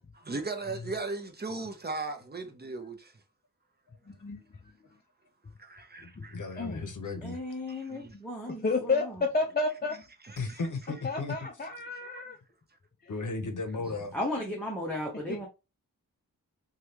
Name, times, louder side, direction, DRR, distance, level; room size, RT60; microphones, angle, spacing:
voice 1, 0.2-3.1 5.6-6.4 7.7-8.1 10.4-10.6 12.1-12.2, right 3 dB, 25° right, 0.7 m, -37 dB
voice 2, 4.1-4.4 6.2-6.3 6.6-6.8 8.1-8.2 8.5-10.0 11.0-12.4 13.0-13.1 13.8-13.9 15.3-15.5, left 3 dB, 25° left, 0.5 m, -31 dB
voice 3, 6.3-7.4 10.4-11.3 13.1-14.1, left 3 dB, 55° left, 0.8 m, -35 dB
voice 4, 7.2-8.6 14.1-15.5, left 1 dB, 5° left, 0.8 m, -35 dB
3.2 x 2.4 x 2.7 m
cardioid pair, 50°, 36 cm